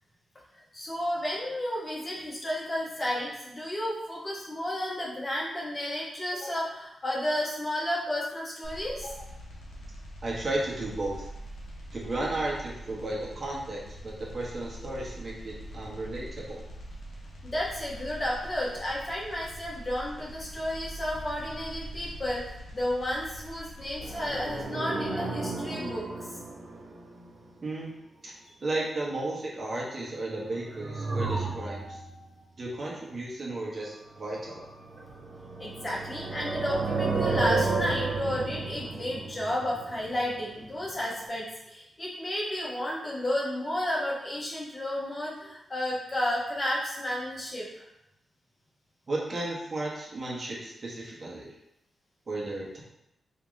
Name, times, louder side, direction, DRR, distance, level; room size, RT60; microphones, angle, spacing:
voice 1, 0.5-9.3 17.4-22.4 22.7-26.3 35.6-47.9, left 1 dB, 35° left, -4 dB, 1.1 m, -32 dB
sound 1, 8.6-24.6, right 1 dB, 85° left, 0.9 m, -43 dB
voice 2, 10.2-11.3 11.9-16.7 27.6-27.9 28.2-28.3 28.6-32.0 32.6-34.7 36.3-36.5 49.1-51.5 52.3-52.8, right 2 dB, 45° right, -4 dB, 1.0 m, -34 dB
sound 2, 24.0-27.1 30.4-32.2 34.5-40.6 40.8-40.9, right 3 dB, 65° right, 0.6 m, -32 dB
3.0 x 2.8 x 3.6 m, 0.85 s
cardioid pair, 65°, 0 cm